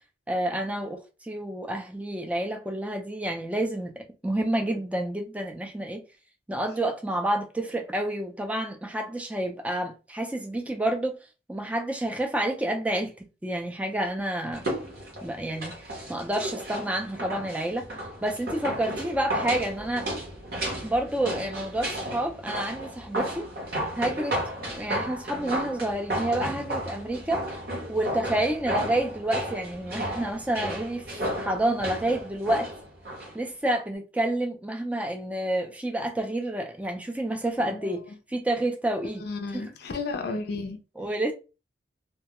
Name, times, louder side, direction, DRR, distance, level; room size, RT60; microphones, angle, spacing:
voice 1, 0.3-6.0 6.5-11.2 11.5-13.1 13.4-14.7 15.2-17.9 18.2-20.1 20.8-23.5 24.0-24.4 24.7-27.4 27.9-31.0 31.4-32.7 33.3-38.0 38.3-39.2 39.5-39.7 41.0-41.3, right 1 dB, 10° right, 0.4 m, -29 dB
sound 1, 14.5-33.3 33.6-33.7, right 1 dB, 55° right, 0.9 m, -33 dB
voice 2, 37.6-37.9 39.2-40.8, left 3 dB, 60° left, 0.4 m, -33 dB
2.2 x 2.1 x 2.9 m
head